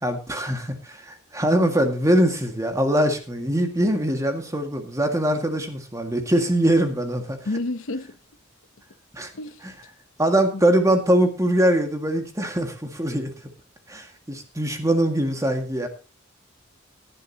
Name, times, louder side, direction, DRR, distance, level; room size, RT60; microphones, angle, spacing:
voice 1, 0.0-7.4 9.1-9.3 9.6-9.7 10.2-13.3 13.9-15.9, right 1 dB, 15° right, 2.0 m, -22 dB
voice 2, 7.4-8.2 9.3-9.6 10.5-10.9, left 2 dB, 85° left, 0.9 m, -30 dB
18.0 x 10.5 x 2.9 m
head